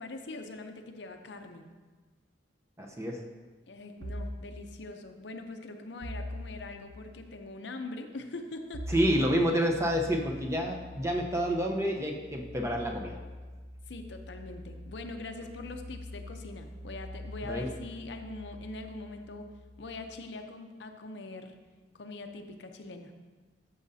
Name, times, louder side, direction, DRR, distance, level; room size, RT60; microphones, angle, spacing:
voice 1, 0.0-1.7 3.7-8.8 13.9-19.4 19.8-21.5 21.9-23.1, left 2 dB, 70° left, 6 dB, 0.7 m, -42 dB
voice 2, 2.8-3.2 8.9-13.1 17.4-17.7, equal, 15° right, 1 dB, 0.8 m, -29 dB
sound 1, 4.0-4.5 6.0-7.0 8.7-20.1, left 1 dB, 75° right, 0.8 m, -43 dB
13.0 x 6.6 x 2.7 m, 1.3 s
head